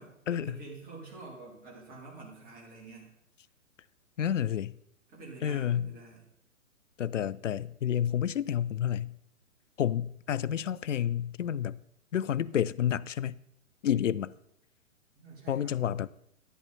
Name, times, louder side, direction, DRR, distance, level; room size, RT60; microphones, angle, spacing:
voice 1, 0.0-3.1 5.1-6.3 15.2-15.8, right 3 dB, 20° right, 3.5 m, -47 dB
voice 2, 4.2-4.8 5.4-5.9 7.0-9.2 9.8-11.8 12.1-13.4 13.8-14.3 15.5-16.1, left 10 dB, 65° left, 0.6 m, -30 dB
11.0 x 10.5 x 4.2 m
figure-of-eight pair, 120°, 40 cm